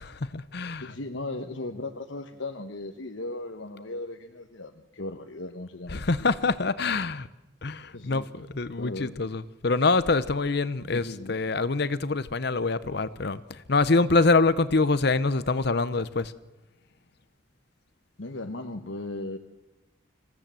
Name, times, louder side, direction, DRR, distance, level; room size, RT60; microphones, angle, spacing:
voice 1, 0.0-0.9 5.9-7.3 7.6-16.3, left 3 dB, 55° left, 15 dB, 0.8 m, -25 dB
voice 2, 0.8-6.3 7.9-8.3 8.8-9.2 10.9-11.4 18.2-19.4, left 2 dB, 70° left, 5 dB, 1.1 m, -37 dB
26.5 x 16.0 x 7.6 m, 1.1 s
head